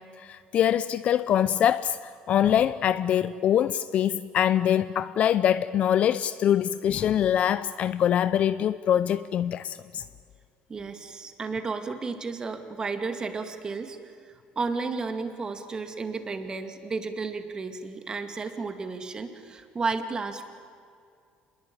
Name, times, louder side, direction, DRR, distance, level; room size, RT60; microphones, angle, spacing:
voice 1, 0.0-2.0 2.3-10.0, left 10 dB, 50° left, 0.6 m, -24 dB
voice 2, 10.7-20.4, right 4 dB, 25° right, 2.3 m, -33 dB
27.0 x 21.5 x 8.8 m
cardioid pair, 130°, 3 cm